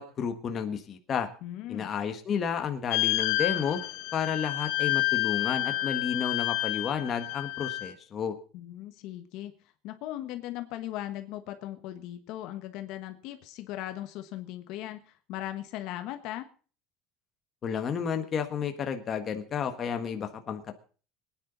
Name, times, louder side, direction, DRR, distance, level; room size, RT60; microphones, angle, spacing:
voice 1, 0.0-1.3 1.7-3.8 4.1-8.3 17.6-20.7, left 7 dB, 30° left, 6 dB, 1.5 m, -31 dB
voice 2, 1.4-1.9 8.5-9.5 9.8-16.4, left 13 dB, 60° left, 7 dB, 1.3 m, -38 dB
sound 1, 2.9-7.9, left 19 dB, 80° left, 1.1 m, -29 dB
22.5 x 10.0 x 4.0 m, 0.39 s
cardioid pair, 160°, 0 cm